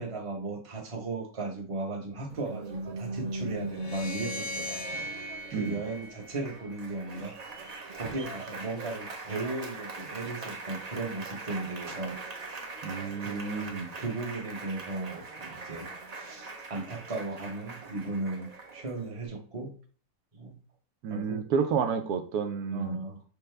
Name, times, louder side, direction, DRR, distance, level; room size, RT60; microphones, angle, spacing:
voice 1, 0.0-4.8 5.5-7.3 7.9-12.2 13.2-19.7 20.3-20.6 21.1-21.4 22.7-23.2, right 3 dB, 25° right, 1 dB, 0.9 m, -36 dB
Applause, 2.3-19.3, right 2 dB, 45° right, 0.5 m, -41 dB
sound 1, 3.7-7.0, equal, 35° left, 0.6 m, -39 dB
voice 2, 12.8-13.9 21.0-23.0, right 6 dB, 80° right, 7 dB, 1.1 m, -30 dB
6.4 x 2.1 x 3.3 m, 0.42 s
omnidirectional pair, 1.6 m